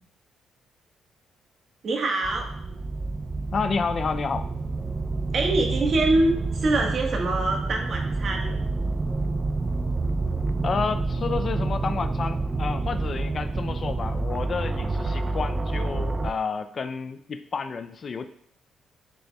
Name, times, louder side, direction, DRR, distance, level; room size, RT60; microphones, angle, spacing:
voice 1, 1.8-2.5 5.3-8.6, right 2 dB, 50° right, 2 dB, 1.4 m, -24 dB
sound 1, 2.2-16.3, right 3 dB, 25° right, 0.4 m, -28 dB
voice 2, 3.5-4.5 10.6-18.3, left 5 dB, 45° left, 10 dB, 0.4 m, -30 dB
11.5 x 4.0 x 2.3 m, 0.68 s
cardioid pair, 90°, 0 cm